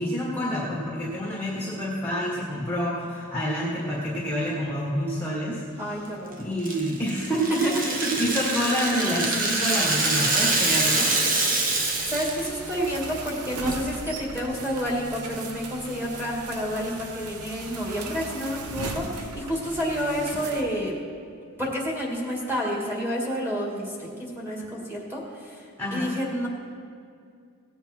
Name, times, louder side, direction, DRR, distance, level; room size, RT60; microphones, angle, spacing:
voice 1, 0.0-5.9 6.4-11.1 25.8-26.1, equal, 10° left, -5 dB, 1.4 m, -28 dB
voice 2, 5.8-6.3 7.6-8.2 12.1-21.0 21.6-25.6 25.9-26.5, equal, 10° right, -3 dB, 2.2 m, -29 dB
Rattle (instrument), 6.6-12.5 12.7-12.9 13.3-13.7, right 3 dB, 40° right, 1.2 m, -25 dB
Car / Accelerating revving vroom, 7.4-10.6, right 2 dB, 65° right, 1.0 m, -34 dB
sound 1, 11.7-20.6, right 3 dB, 85° right, 0.9 m, -37 dB
17.0 x 8.1 x 4.5 m, 2.3 s
head